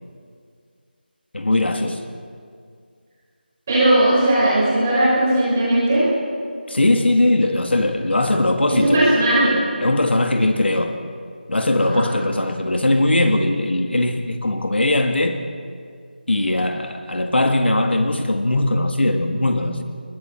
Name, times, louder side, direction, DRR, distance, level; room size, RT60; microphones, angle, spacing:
voice 1, 1.3-2.0 6.7-9.1 9.8-11.0 11.5-15.4 16.3-19.8, left 1 dB, 85° left, 5 dB, 2.0 m, -20 dB
voice 2, 3.7-6.1 8.7-9.5 11.8-12.1, right 1 dB, 10° right, -10 dB, 6.1 m, -17 dB
29.5 x 21.0 x 4.4 m, 2.2 s
figure-of-eight pair, 180°, 6 cm